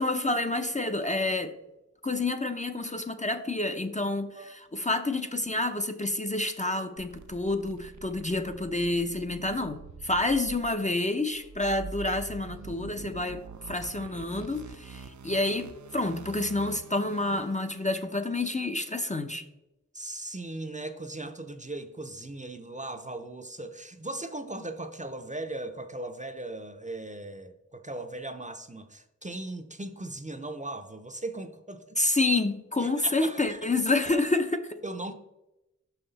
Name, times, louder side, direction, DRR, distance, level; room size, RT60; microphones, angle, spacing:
voice 1, 0.0-1.5 2.0-19.5 32.0-34.8, left 2 dB, 25° left, 7 dB, 0.5 m, -29 dB
sound 1, 7.0-17.8, right 5 dB, 70° right, 0.5 m, -45 dB
voice 2, 19.9-32.1 32.8-33.7 34.8-35.1, right 2 dB, 25° right, 7 dB, 0.5 m, -38 dB
6.0 x 5.7 x 4.0 m, 0.93 s
wide cardioid pair, 45°, 30 cm